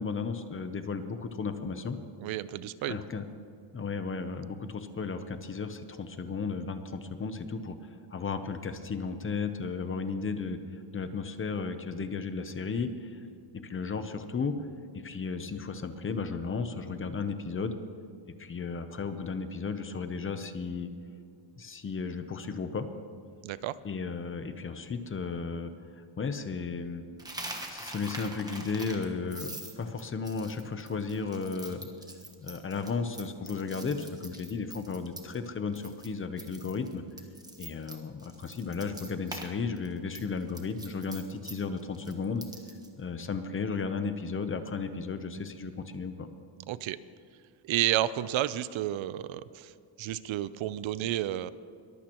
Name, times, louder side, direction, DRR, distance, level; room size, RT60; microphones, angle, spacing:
voice 1, 0.0-2.0 2.9-3.3 3.7-7.8 8.1-13.2 13.5-14.6 14.9-17.8 18.4-20.9 21.6-22.9 23.8-25.7 26.0-27.0 27.7-31.9 32.4-37.0 37.6-42.4 43.0-46.3, left 5 dB, 25° left, 9 dB, 0.7 m, -34 dB
voice 2, 2.2-3.0 23.4-23.7 46.7-47.0 47.6-49.7 50.0-51.5, right 13 dB, 70° right, 16 dB, 0.6 m, -31 dB
Coin (dropping), 27.2-35.5 35.7-36.1 36.4-39.5 39.8-42.9, right 1 dB, 10° right, 1.2 m, -44 dB
22.0 x 15.0 x 3.0 m, 2.5 s
cardioid pair, 175°, 50 cm